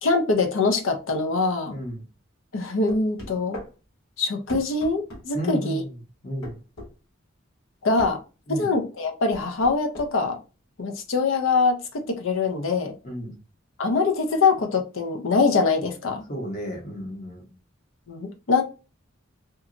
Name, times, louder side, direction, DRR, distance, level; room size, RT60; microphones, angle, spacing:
voice 1, 0.0-1.7 2.5-3.6 4.2-5.8 7.8-8.2 8.5-10.4 10.8-12.9 13.8-16.3 18.1-18.6, left 4 dB, 70° left, 0.5 m, -23 dB
voice 2, 1.7-2.0 5.3-6.0 6.2-6.6 8.5-8.7 13.0-13.4 16.3-17.5, equal, 40° left, 0.9 m, -33 dB
sound 1, 2.9-3.7 4.5-5.2 6.4-6.9 8.0-8.2 9.3-10.1, left 1 dB, 90° left, 1.3 m, -38 dB
2.9 x 2.2 x 2.4 m
head